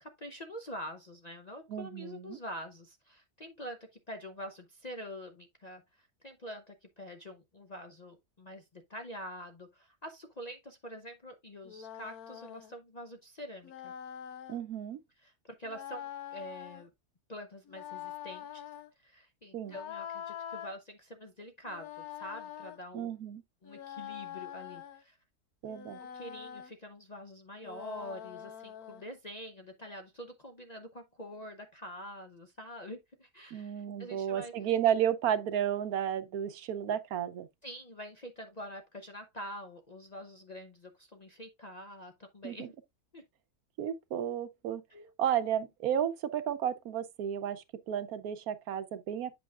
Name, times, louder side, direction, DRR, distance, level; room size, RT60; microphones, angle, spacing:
voice 1, 0.0-13.9 15.2-16.9 17.3-18.6 19.0-23.1 23.6-25.2 26.0-34.5 37.6-42.7 43.1-43.2 44.9-45.1, equal, 40° left, 0.6 m, -46 dB
voice 2, 1.7-2.4 14.5-15.0 19.5-19.8 22.9-23.4 25.6-26.0 33.5-37.5 42.4-42.7 43.8-44.8 45.2-49.3, right 9 dB, 75° right, 1.1 m, -32 dB
sound 1, 11.6-12.7 13.6-14.6 15.6-16.9 17.7-18.9 19.7-20.7 21.6-22.8 23.6-25.0 25.6-26.7 27.6-29.0, left 10 dB, 75° left, 1.3 m, -44 dB
7.9 x 6.1 x 2.4 m
omnidirectional pair, 1.6 m